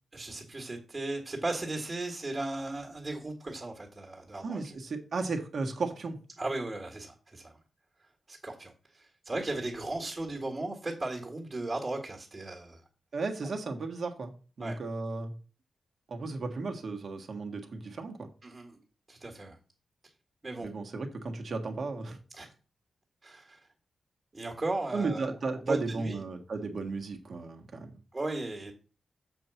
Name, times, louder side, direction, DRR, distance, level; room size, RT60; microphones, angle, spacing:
voice 1, 0.1-4.6 6.4-7.6 8.3-12.8 14.6-14.8 18.4-18.8 19.1-19.6 20.4-20.7 22.3-22.5 23.2-23.6 24.3-25.3 25.6-26.2 28.1-28.7, right 2 dB, 25° right, 1 dB, 1.9 m, -36 dB
voice 2, 4.4-6.2 13.1-14.3 14.6-15.3 16.1-18.3 20.6-22.2 24.9-28.0, right 3 dB, 55° right, 4 dB, 1.6 m, -34 dB
7.3 x 4.5 x 6.9 m, 0.36 s
wide cardioid pair, 120°, 0 cm